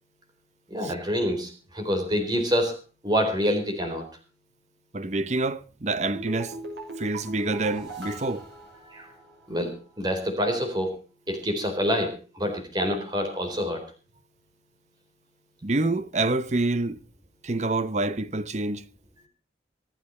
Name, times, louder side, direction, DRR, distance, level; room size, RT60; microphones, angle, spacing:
voice 1, 0.7-2.7 3.0-4.1 8.9-9.1 9.5-10.9 11.3-13.8, equal, 25° right, 4.0 m, -27 dB
voice 2, 4.9-6.6 7.0-8.5 15.6-17.0 17.4-18.8, right 2 dB, 40° right, 0.8 m, -27 dB
sound 1, 6.0-9.4 9.7-9.8, right 1 dB, 90° right, 6.5 m, -39 dB
25.5 x 9.2 x 4.3 m
head